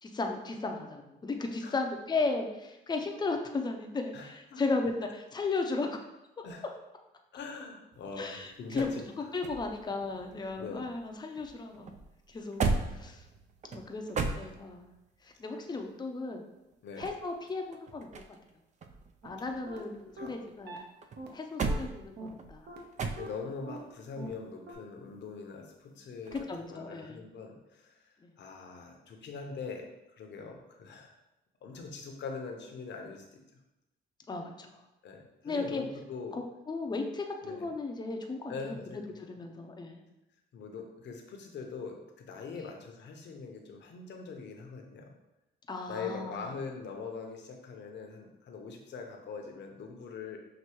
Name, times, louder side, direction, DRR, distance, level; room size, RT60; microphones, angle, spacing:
voice 1, 0.0-6.0 8.2-8.9 9.3-11.9 12.3-12.6 12.9-13.2 13.7-14.9 15.2-16.4 17.0-18.4 19.2-20.8 21.3-22.7 26.5-27.2 28.2-28.3 34.3-34.8 35.4-35.8 36.3-40.0 42.6-42.7 45.7-46.4, left 3 dB, 20° left, 3 dB, 0.6 m, -35 dB
voice 2, 4.1-4.6 6.4-6.6 7.3-9.3 10.6-10.9 16.8-17.1 20.2-20.3 23.2-31.1 31.6-33.4 35.0-36.4 37.4-37.7 38.5-39.0 40.5-45.1 45.9-50.4, left 5 dB, 65° left, 3 dB, 0.8 m, -42 dB
sound 1, 7.9-11.1 11.4-15.0 16.7-18.5 18.8-20.6 21.0-23.6 26.3-26.6, right 4 dB, 35° right, 0.4 m, -37 dB
sound 2, 19.2-19.3 19.7-19.8 20.2-20.3 20.7-20.8 21.2-21.3 21.7-21.8 22.2-22.3 22.7-22.8 23.2-23.3 23.7-23.8 24.2-24.3 24.7-24.8, right 3 dB, 55° right, 0.9 m, -43 dB
5.9 x 2.6 x 3.0 m, 0.93 s
cardioid pair, 90°, 20 cm